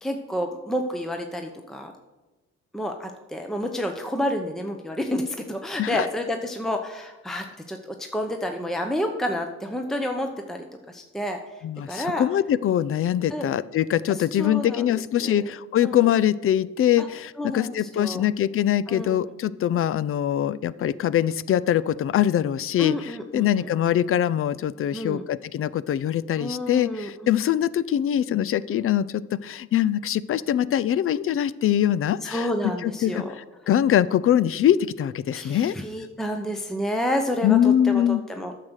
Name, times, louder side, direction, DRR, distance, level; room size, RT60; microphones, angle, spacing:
voice 1, 0.0-1.9 2.7-12.2 13.3-13.5 14.1-14.9 15.2-15.5 15.8-16.1 17.0-17.1 17.4-18.2 18.9-19.3 22.8-23.7 24.9-25.2 26.4-27.3 32.2-33.3 35.3-38.0 38.3-38.5, equal, ahead, 4 dB, 0.8 m, -30 dB
voice 2, 11.6-32.5 32.8-35.7 37.4-38.2, left 11 dB, 45° left, 18 dB, 0.4 m, -23 dB
9.4 x 6.6 x 6.3 m, 1.2 s
cardioid pair, 90°, 30 cm